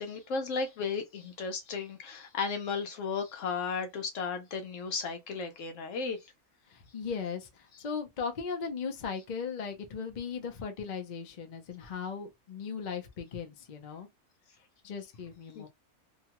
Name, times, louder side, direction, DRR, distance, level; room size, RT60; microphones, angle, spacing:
voice 1, 0.0-6.2 15.5-15.7, left 5 dB, 70° left, 1.0 m, -34 dB
voice 2, 6.7-14.1 14.8-15.7, left 6 dB, 45° left, 0.6 m, -37 dB
2.8 x 2.2 x 2.9 m
omnidirectional pair, 1.5 m